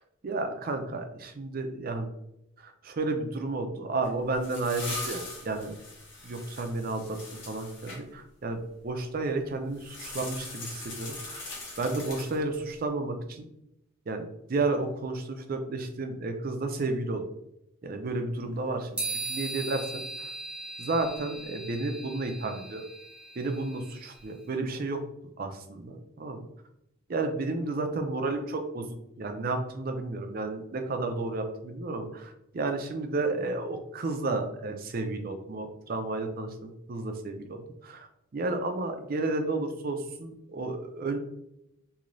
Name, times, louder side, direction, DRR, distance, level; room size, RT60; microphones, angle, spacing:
voice 1, 0.2-2.1 2.6-5.7 6.2-11.4 11.8-13.5 14.1-17.2 17.8-20.3 20.8-22.9 23.4-25.0 25.4-26.5 27.1-38.1 38.3-41.2, right 2 dB, 45° right, 6 dB, 0.4 m, -32 dB
sound 1, 4.0-8.0 9.7-12.7, left 3 dB, 60° left, 0.9 m, -41 dB
sound 2, 19.0-24.3, right 3 dB, 5° right, 0.7 m, -38 dB
3.1 x 2.7 x 2.5 m, 0.81 s
head